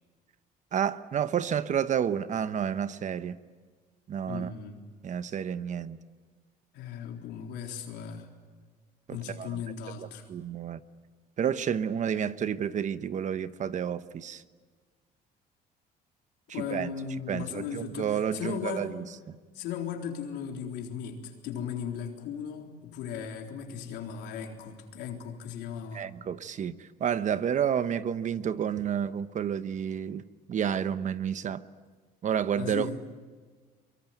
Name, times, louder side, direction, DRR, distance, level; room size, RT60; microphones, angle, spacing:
voice 1, 0.7-3.4 4.1-4.5 5.0-6.0 9.1-9.6 10.0-10.8 11.4-14.4 16.5-16.9 17.3-19.0 25.9-30.2 30.5-31.6 32.2-33.0, right 8 dB, 45° right, 1.0 m, -30 dB
voice 2, 4.3-4.8 6.7-8.3 9.1-10.3 16.5-19.0 19.5-26.1 32.6-33.0, left 7 dB, 85° left, 3.9 m, -37 dB
24.0 x 23.0 x 9.3 m
cardioid pair, 110°, 17 cm